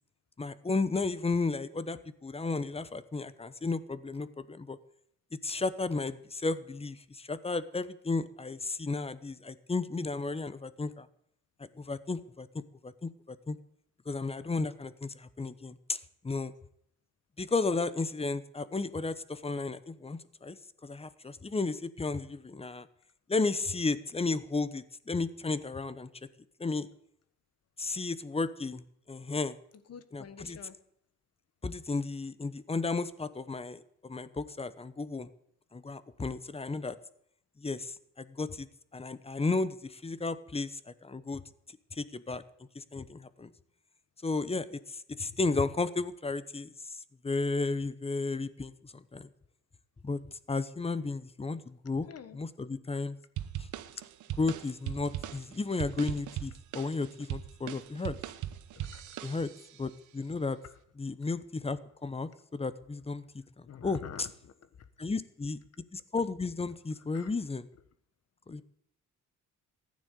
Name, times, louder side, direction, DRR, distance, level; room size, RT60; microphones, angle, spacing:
voice 1, 0.4-4.8 5.4-11.1 11.6-13.6 14.1-16.5 17.4-20.6 20.8-22.9 23.3-26.1 26.6-26.9 27.8-29.6 30.1-30.6 31.6-35.3 35.7-37.0 37.6-41.4 41.9-42.4 42.7-43.5 44.2-49.3 50.0-50.2 50.5-52.1 52.3-53.2 53.6-53.7 54.4-58.2 59.2-59.5 59.8-60.6 61.0-63.2 63.6-64.0 65.0-65.6 65.9-67.7 68.5-68.6, left 3 dB, 20° left, 15 dB, 1.0 m, -33 dB
voice 2, 29.9-30.8 52.1-52.4 58.7-59.1 63.7-64.5 67.1-67.3, left 8 dB, 55° left, 12 dB, 1.5 m, -47 dB
sound 1, 53.4-59.8, right 12 dB, 75° right, 1.1 m, -40 dB
15.0 x 9.7 x 8.3 m, 0.70 s
cardioid pair, 90°, 30 cm